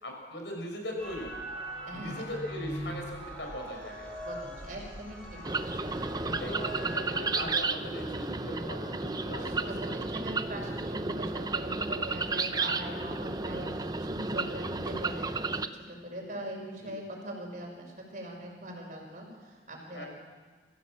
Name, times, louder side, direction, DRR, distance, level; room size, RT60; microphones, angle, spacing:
voice 1, 0.0-1.4 1.9-4.1 6.4-10.0 12.5-12.9 16.8-16.9 19.9-20.1, equal, 75° left, 2 dB, 5.5 m, -40 dB
sound 1, 1.0-7.6, right 1 dB, 5° left, 6.9 m, -41 dB
voice 2, 1.9-2.2 4.3-6.7 7.1-7.2 8.5-8.9 9.4-15.3 15.7-20.1, right 1 dB, 45° right, -1 dB, 5.7 m, -41 dB
sound 2, 5.4-15.7, right 3 dB, 20° right, 0.7 m, -33 dB
24.0 x 15.0 x 7.6 m, 1.5 s
head